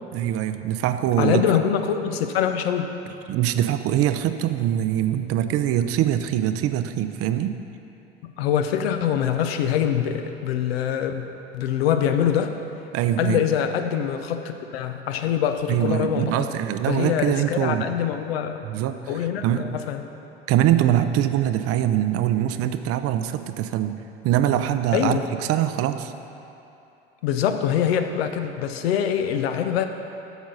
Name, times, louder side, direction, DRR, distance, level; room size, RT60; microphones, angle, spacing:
voice 1, 0.1-1.4 3.3-7.6 12.9-13.4 15.7-17.8 18.6-19.7 20.5-24.0 24.2-26.1, right 11 dB, 50° right, 10 dB, 0.5 m, -23 dB
voice 2, 1.2-2.9 8.4-11.2 11.5-12.6 13.2-16.5 16.9-18.6 19.1-20.0 24.9-25.2 27.2-29.9, left 9 dB, 80° left, 7 dB, 0.7 m, -24 dB
8.1 x 6.2 x 5.4 m, 2.8 s
hypercardioid pair, 70°, 30 cm